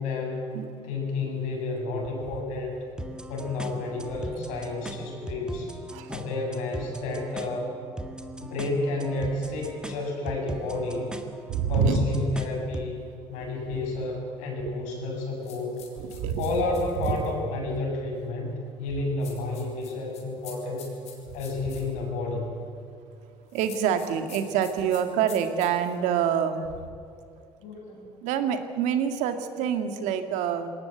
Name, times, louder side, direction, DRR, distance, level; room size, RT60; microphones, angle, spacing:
voice 1, 0.0-0.4 0.8-2.8 3.3-5.7 6.1-7.7 8.4-11.1 11.7-13.0 13.3-15.9 16.4-20.9 21.3-22.5 27.6-28.1, left 2 dB, 80° left, -1 dB, 7.8 m, -31 dB
voice 2, 0.5-0.9 5.9-6.1 11.5-12.0 14.6-14.8 16.0-16.5 17.0-17.3 23.5-26.7 28.2-30.7, right 8 dB, 80° right, 8 dB, 2.1 m, -26 dB
sound 1, 3.0-13.0, right 1 dB, 5° right, 1.9 m, -40 dB
sound 2, 15.4-17.3 19.2-21.9 23.5-26.0, left 8 dB, 65° left, 5.4 m, -47 dB
20.5 x 18.5 x 9.3 m, 2.4 s
supercardioid pair, 100°, 12 cm